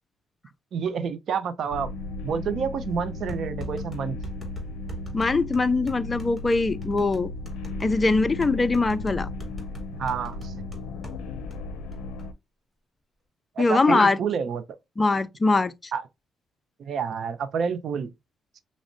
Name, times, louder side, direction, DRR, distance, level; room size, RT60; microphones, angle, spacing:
voice 1, 0.7-1.9 2.2-4.2 10.0-10.6 13.6-14.6 15.9-16.0 16.8-18.1, right 6 dB, 65° right, 0.5 m, -29 dB
sound 1, 1.7-12.3, left 2 dB, 90° left, 0.5 m, -35 dB
sound 2, 3.3-11.2 11.5-11.6 11.9-12.3, equal, 5° left, 2.4 m, -42 dB
voice 2, 5.1-7.3 7.8-9.3 13.6-14.2 15.0-15.7, left 3 dB, 25° left, 0.4 m, -22 dB
6.0 x 2.0 x 2.5 m
cardioid pair, 90°, 0 cm